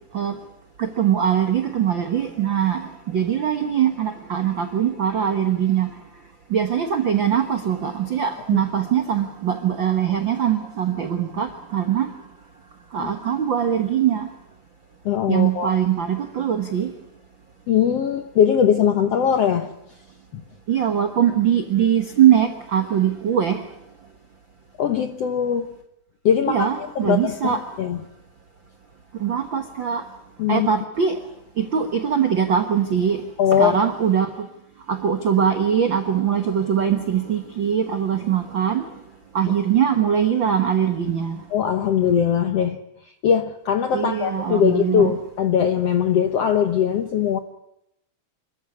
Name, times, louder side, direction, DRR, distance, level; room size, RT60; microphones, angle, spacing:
voice 1, 0.8-6.0 6.5-12.1 12.9-14.3 15.3-16.9 20.7-23.7 26.5-27.6 29.2-30.0 30.5-31.2 31.6-33.2 33.5-34.5 34.9-38.8 39.3-41.4 43.9-45.2, right 8 dB, 80° right, 1.0 m, -22 dB
voice 2, 15.0-15.7 17.7-19.7 20.3-20.4 24.8-25.7 26.2-28.0 30.4-30.7 33.4-33.8 41.5-47.4, left 8 dB, 75° left, 1.4 m, -21 dB
26.5 x 14.0 x 9.7 m
omnidirectional pair, 4.3 m